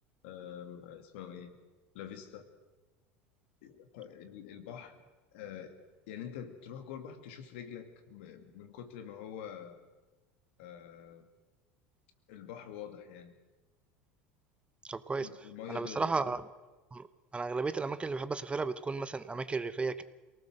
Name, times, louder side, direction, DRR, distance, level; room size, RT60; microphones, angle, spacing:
voice 1, 0.2-1.6 1.9-2.5 3.6-5.0 5.3-9.8 10.6-11.3 12.3-13.3 15.2-16.3, left 9 dB, 75° left, 7 dB, 2.4 m, -46 dB
voice 2, 14.8-15.3 15.7-16.4 16.9-17.1 17.3-20.0, right 4 dB, 20° right, 13 dB, 0.9 m, -34 dB
24.0 x 18.5 x 6.6 m, 1.2 s
hypercardioid pair, 90°, 6 cm